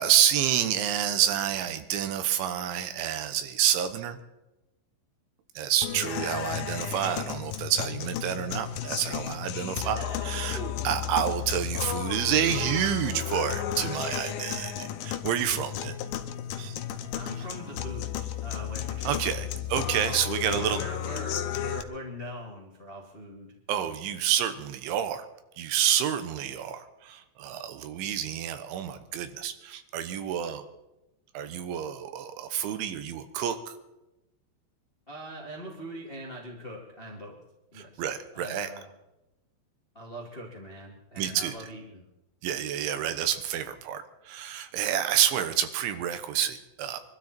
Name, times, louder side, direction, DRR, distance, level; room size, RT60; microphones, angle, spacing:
voice 1, 0.0-4.2 5.6-10.6 10.8-15.9 16.6-16.8 19.0-20.8 23.7-25.3 25.6-30.6 31.3-33.8 37.8-38.7 41.2-41.5 42.4-47.0, right 10 dB, 80° right, 10 dB, 3.4 m, -28 dB
sound 1, 5.8-21.8, left 10 dB, 75° left, 2.8 m, -33 dB
voice 2, 10.4-10.7 17.1-19.9 20.4-23.5 35.1-37.4 37.7-38.0 38.3-38.9 39.9-42.0, equal, 35° left, -2 dB, 0.9 m, -41 dB
24.0 x 12.5 x 4.4 m, 0.95 s
omnidirectional pair, 5.4 m